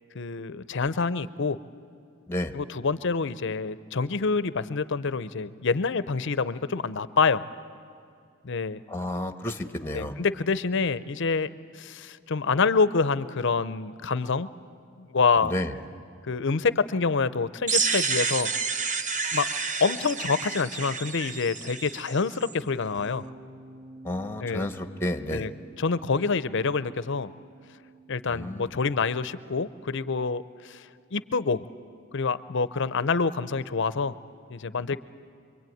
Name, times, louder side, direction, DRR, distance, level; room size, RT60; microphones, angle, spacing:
voice 1, 0.1-1.6 2.5-7.4 8.4-8.8 9.9-11.5 11.7-14.5 15.0-15.5 16.3-18.5 19.3-19.5 19.8-23.2 24.4-24.7 25.3-25.5 25.8-27.3 28.1-31.7 32.1-34.1 34.5-35.0, left 4 dB, 65° left, 15 dB, 0.7 m, -27 dB
voice 2, 8.9-10.1 15.4-15.7 24.0-25.5 28.3-28.7, left 1 dB, 10° left, 8 dB, 1.2 m, -31 dB
sound 1, 17.7-22.5, right 5 dB, 40° right, 0.9 m, -29 dB
sound 2, 23.0-29.2, right 3 dB, 10° right, 1.8 m, -50 dB
26.0 x 23.0 x 9.3 m, 2.4 s
head